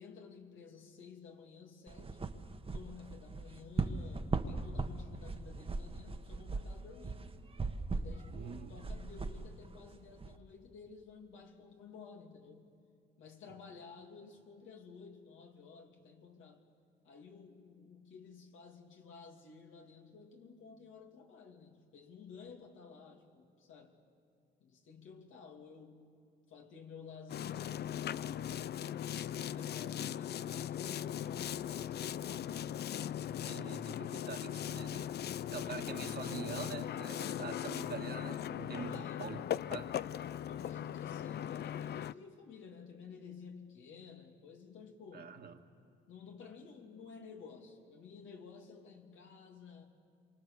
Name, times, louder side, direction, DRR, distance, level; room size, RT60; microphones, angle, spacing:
voice 1, 0.0-2.3 2.7-7.3 8.0-12.7 13.2-16.6 17.0-23.9 24.6-26.2 26.5-27.8 29.0-33.2 35.4-35.9 38.8-39.5 40.5-45.5 46.1-49.9, left 5 dB, 75° left, 2 dB, 2.8 m, -53 dB
sound 1, 1.9-10.4, right 3 dB, 30° right, 1.3 m, -39 dB
voice 2, 8.3-8.7 33.5-35.1 35.5-39.4 39.7-39.9 45.1-45.6, right 6 dB, 50° right, 5 dB, 1.9 m, -45 dB
Boat Water vehicle, 27.3-42.1, left 10 dB, 55° left, 0.5 m, -39 dB
27.0 x 24.0 x 7.0 m, 2.3 s
cardioid pair, 90°, 20 cm